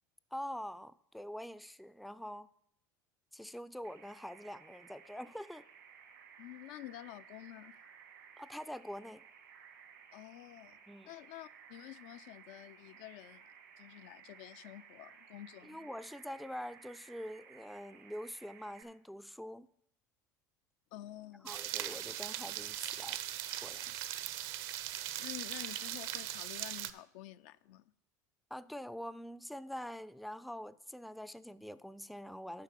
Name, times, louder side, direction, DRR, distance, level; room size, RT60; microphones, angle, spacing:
voice 1, 0.3-2.5 3.3-5.6 8.4-9.2 10.9-11.1 15.6-19.7 21.4-23.2 23.6-23.9 28.5-32.6, equal, ahead, 0.4 m, -45 dB
sound 1, 3.8-18.8, right 7 dB, 80° right, 1.6 m, -58 dB
voice 2, 6.4-7.8 10.1-10.8 11.1-15.9 20.9-21.6 25.2-27.8, left 14 dB, 65° left, 0.4 m, -50 dB
sound 2, 21.5-26.9, right 13 dB, 60° right, 0.7 m, -40 dB
7.5 x 5.7 x 7.4 m
hypercardioid pair, 75°, 10 cm